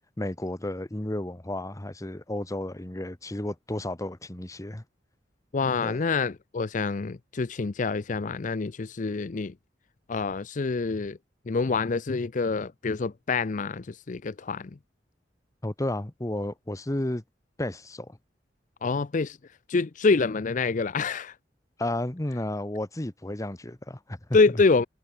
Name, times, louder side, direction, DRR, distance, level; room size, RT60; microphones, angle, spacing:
voice 1, 0.2-4.8 5.8-6.0 15.6-17.2 17.6-18.2 21.8-24.2 24.5-24.6, left 1 dB, 20° left, 1.0 m, -32 dB
voice 2, 5.5-9.5 10.1-11.2 11.5-14.7 18.8-19.4 19.7-21.3 24.3-24.9, left 4 dB, 45° left, 0.5 m, -26 dB
head